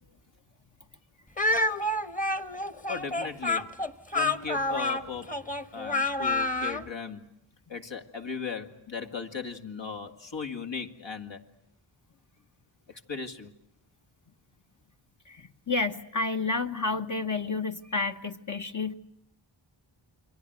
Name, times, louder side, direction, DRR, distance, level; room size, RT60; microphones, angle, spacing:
Speech, 1.4-6.8, left 2 dB, 15° left, 1.2 m, -28 dB
voice 1, 2.9-3.7 4.1-5.4 5.7-7.3 7.7-11.4 12.9-13.5, left 5 dB, 65° left, 4 dB, 2.3 m, -37 dB
voice 2, 15.3-18.9, left 3 dB, 40° left, 4 dB, 1.1 m, -30 dB
29.0 x 23.5 x 8.0 m, 0.78 s
wide cardioid pair, 80°, 47 cm